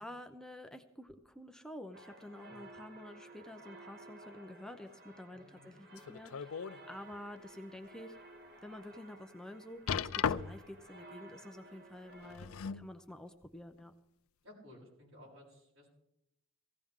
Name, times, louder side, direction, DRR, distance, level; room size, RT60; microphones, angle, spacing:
voice 1, 0.0-8.2 8.6-13.9, left 1 dB, 5° left, 6 dB, 0.6 m, -49 dB
sound 1, 1.9-12.4, right 2 dB, 50° right, 1.8 m, -55 dB
voice 2, 5.3-5.7 6.8-6.9 14.4-15.9, left 1 dB, 70° right, -3 dB, 7.1 m, -57 dB
sound 2, 6.0-6.8 7.3-7.4 8.0-8.1 9.9-10.8 12.1-12.9 13.8-13.9, left 7 dB, 90° left, 0.5 m, -36 dB
18.5 x 15.5 x 3.7 m, 0.81 s
head